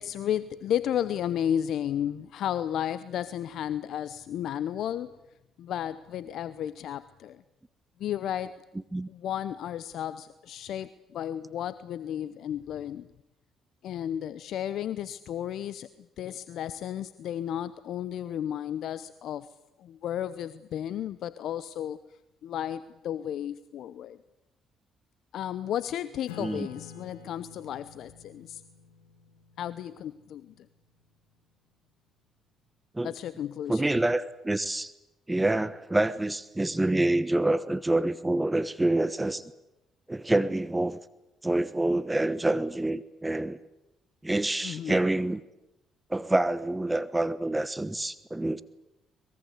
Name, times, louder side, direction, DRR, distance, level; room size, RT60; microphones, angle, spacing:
voice 1, 0.0-5.1 5.6-7.4 8.0-8.6 9.1-13.1 13.8-15.9 16.2-19.5 19.8-22.0 22.4-24.2 25.3-28.6 29.6-30.7 33.0-34.0 44.6-45.0, left 10 dB, 65° left, 15 dB, 0.8 m, -33 dB
Acoustic guitar / Strum, 26.3-31.3, left 7 dB, 90° left, 2.3 m, -50 dB
voice 2, 33.7-34.9 35.3-39.4 40.1-41.0 41.4-43.6 44.2-45.4 46.1-48.6, right 2 dB, 15° right, 15 dB, 1.2 m, -27 dB
24.0 x 22.0 x 8.3 m, 0.91 s
hypercardioid pair, 55°, 0 cm